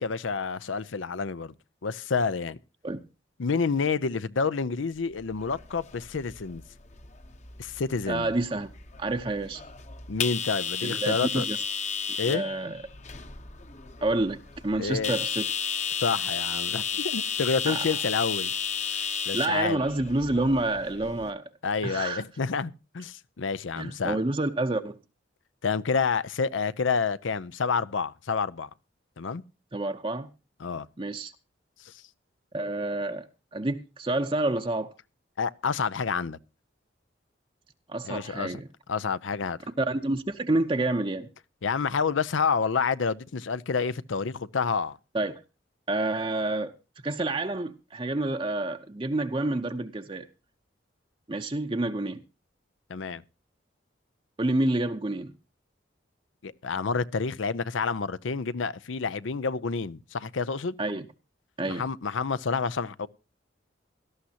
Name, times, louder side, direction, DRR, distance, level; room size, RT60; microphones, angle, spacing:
voice 1, 0.0-1.5 1.8-2.6 3.4-6.6 7.6-8.3 10.1-11.5 12.2-12.4 14.8-15.2 16.0-18.5 18.9-19.8 21.6-24.2 25.6-28.7 29.2-29.4 30.6-30.9 31.8-31.9 35.4-36.4 38.0-38.6 38.9-39.6 41.6-45.0 52.9-53.2 56.4-60.8 61.7-63.1, left 5 dB, 90° left, 0.6 m, -29 dB
sound 1, 5.2-21.3, left 7 dB, 35° left, 0.9 m, -33 dB
voice 2, 8.1-8.7 9.0-9.6 10.8-11.6 12.3-12.8 14.0-15.5 17.7-18.0 19.3-21.4 21.8-22.2 23.8-25.0 29.7-30.3 31.0-31.3 32.5-33.3 33.5-34.9 37.9-38.7 39.8-41.3 45.1-45.3 45.9-46.7 47.0-50.3 51.3-52.2 54.4-55.3 60.8-61.1 61.6-61.9, right 2 dB, 25° right, 0.7 m, -28 dB
17.5 x 13.0 x 2.8 m
head